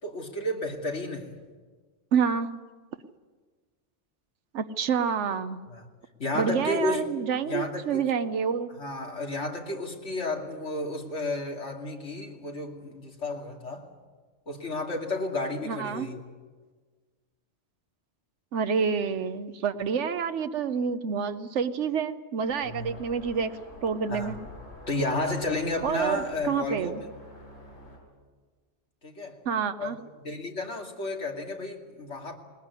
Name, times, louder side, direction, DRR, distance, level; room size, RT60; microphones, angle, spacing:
voice 1, 0.0-1.3 5.7-5.8 6.2-7.0 7.4-8.1 8.8-13.9 14.5-16.2 22.6-22.9 24.1-24.4 24.9-27.0 29.0-29.4 29.8-32.4, left 2 dB, 85° left, 2.9 m, -32 dB
voice 2, 2.1-2.5 4.5-5.6 6.3-8.7 15.7-16.1 18.5-23.5 23.8-24.4 25.8-27.0 29.4-30.0, right 6 dB, 85° right, 1.2 m, -28 dB
sound 1, 22.4-28.0, equal, 70° left, 7.3 m, -47 dB
20.5 x 19.5 x 9.7 m
omnidirectional pair, 1.2 m